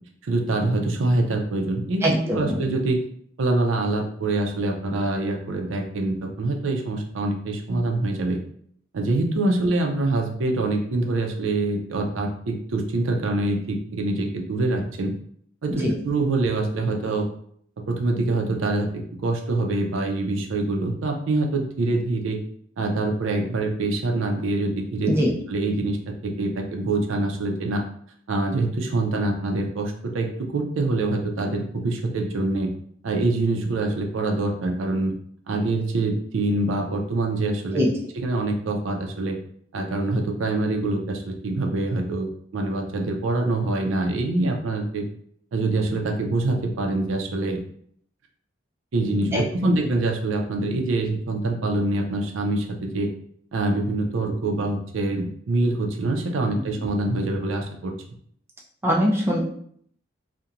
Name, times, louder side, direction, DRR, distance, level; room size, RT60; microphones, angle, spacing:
voice 1, 0.2-3.0 3.4-8.4 8.9-15.1 15.6-17.2 17.9-18.9 19.2-22.4 22.8-25.1 25.5-26.0 26.2-27.8 28.3-32.7 33.0-35.1 35.5-37.9 38.2-39.3 39.7-45.0 45.5-47.6 48.9-53.1 53.5-57.9, right 2 dB, 80° right, 3 dB, 0.4 m, -25 dB
voice 2, 2.0-2.6 15.7-15.9 25.1-25.3 37.7-37.9 49.3-49.7 58.8-59.4, equal, 15° right, -3 dB, 0.4 m, -22 dB
2.8 x 2.1 x 2.4 m, 0.64 s
head